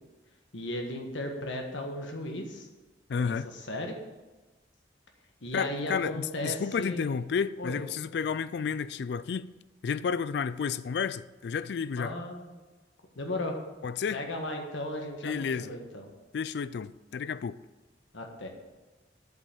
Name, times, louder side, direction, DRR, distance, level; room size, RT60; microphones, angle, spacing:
voice 1, 0.5-2.7 3.2-4.0 5.4-7.1 7.6-7.8 12.0-12.5 13.1-13.6 14.1-16.0 18.1-18.5, left 1 dB, 85° left, 1.5 m, -36 dB
voice 2, 3.1-3.5 5.5-9.5 9.8-12.2 13.8-14.2 15.2-15.7 16.3-17.6, left 6 dB, 65° left, 0.3 m, -31 dB
8.1 x 5.5 x 7.1 m
head